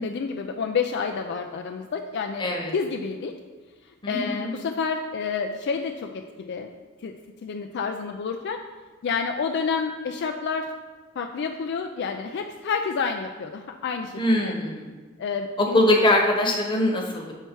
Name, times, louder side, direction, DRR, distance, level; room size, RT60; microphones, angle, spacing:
voice 1, 0.0-2.5 2.7-3.3 4.1-6.7 7.0-7.2 7.4-8.6 9.0-10.7 11.2-14.6 15.2-15.8, left 5 dB, 55° left, 4 dB, 0.4 m, -29 dB
voice 2, 2.4-2.7 4.0-4.5 14.2-14.9 15.6-17.3, left 1 dB, 25° left, 0 dB, 1.0 m, -22 dB
6.7 x 4.5 x 4.5 m, 1.4 s
head